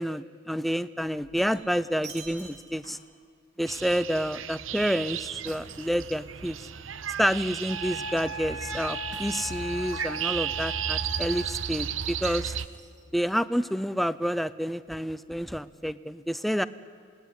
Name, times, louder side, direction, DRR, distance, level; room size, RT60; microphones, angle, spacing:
voice 1, 0.0-3.0 3.6-6.6 7.2-12.6 13.1-16.7, equal, ahead, 14 dB, 0.6 m, -29 dB
Shatter, 1.1-3.2 5.5-6.7 9.1-9.9 12.2-13.3, right 4 dB, 60° right, 2.9 m, -48 dB
sound 1, 3.7-12.7, right 8 dB, 80° right, 0.8 m, -34 dB
Wind instrument woodwind instrument, 7.7-11.5, right 1 dB, 20° right, 3.1 m, -38 dB
27.0 x 20.0 x 10.0 m, 2.2 s
head